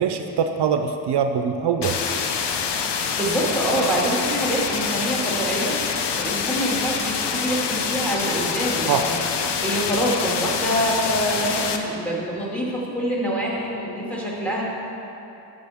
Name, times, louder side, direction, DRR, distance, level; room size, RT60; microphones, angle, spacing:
voice 1, 0.0-2.0 8.9-9.1, right 7 dB, 75° right, 6 dB, 0.5 m, -23 dB
sound 1, 1.8-11.8, left 6 dB, 80° left, 0.7 m, -26 dB
voice 2, 3.2-5.8 6.2-9.2 9.6-14.6, right 1 dB, 5° left, -5 dB, 2.1 m, -25 dB
11.5 x 6.6 x 3.5 m, 2.9 s
cardioid pair, 80°, 41 cm